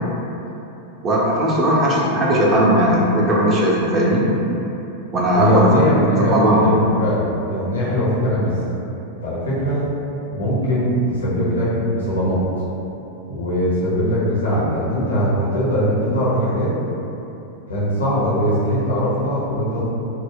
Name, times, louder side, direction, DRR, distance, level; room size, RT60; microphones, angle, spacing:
voice 1, 1.0-4.3 5.1-5.9 6.2-6.7, right 1 dB, 30° right, -5 dB, 0.4 m, -17 dB
voice 2, 5.3-8.5 9.2-9.8 10.3-12.4 13.3-16.7 17.7-19.8, equal, 75° left, -8 dB, 0.6 m, -20 dB
2.2 x 2.0 x 3.6 m, 3.0 s
figure-of-eight pair, 90°, 0 cm